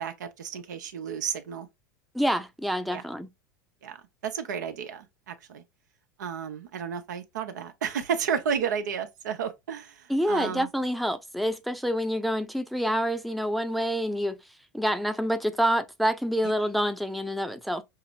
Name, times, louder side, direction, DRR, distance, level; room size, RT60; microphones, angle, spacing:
voice 1, 0.0-1.7 2.9-3.0 3.8-5.6 6.2-10.7, right 7 dB, 85° right, 0.8 m, -32 dB
voice 2, 2.1-3.3 10.1-14.4 14.7-17.8, equal, ahead, 0.5 m, -27 dB
5.6 x 2.0 x 2.4 m
hypercardioid pair, 100°, 10 cm